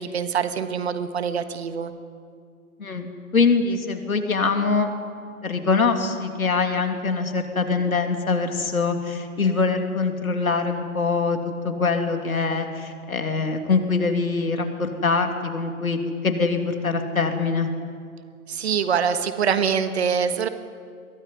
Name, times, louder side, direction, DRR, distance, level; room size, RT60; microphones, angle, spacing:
voice 1, 0.0-1.9 18.5-20.5, right 7 dB, 45° right, 10 dB, 1.6 m, -24 dB
voice 2, 2.8-4.9 5.4-11.4 11.6-16.0 16.2-17.7, left 4 dB, 70° left, 5 dB, 3.0 m, -23 dB
22.5 x 16.5 x 9.8 m, 2.2 s
figure-of-eight pair, 125°, 43 cm